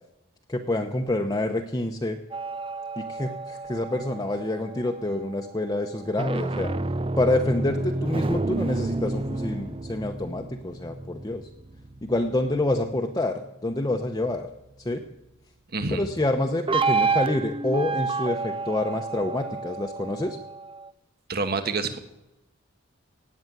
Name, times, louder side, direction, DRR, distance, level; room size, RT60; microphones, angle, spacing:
voice 1, 0.5-2.2 3.0-6.7 7.2-11.4 12.0-14.5 14.8-15.0 15.9-20.4, left 1 dB, 20° left, 3 dB, 0.9 m, -27 dB
sound 1, 2.3-4.9 6.0-12.8 16.7-20.9, right 3 dB, 25° right, 0.6 m, -30 dB
voice 2, 15.7-16.0 21.3-22.0, right 3 dB, 50° right, 8 dB, 1.5 m, -27 dB
17.5 x 7.2 x 9.4 m, 0.91 s
head